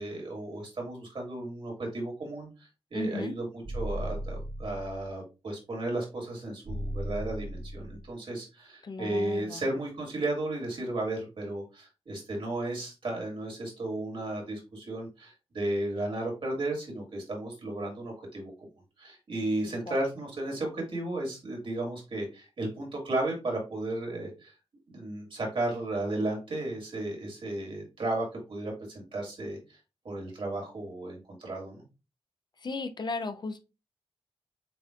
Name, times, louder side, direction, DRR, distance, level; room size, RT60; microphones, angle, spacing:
voice 1, 0.0-18.5 19.0-24.5 24.9-29.8 30.0-31.8, right 2 dB, 60° right, 2.3 m, -34 dB
voice 2, 2.9-3.3 8.8-9.6 19.9-20.0 32.6-33.6, left 3 dB, 45° left, 0.5 m, -35 dB
sound 1, 3.6-5.1 6.7-8.1, right 1 dB, 80° right, 2.7 m, -36 dB
7.5 x 2.6 x 2.5 m
wide cardioid pair, 135°, 10 cm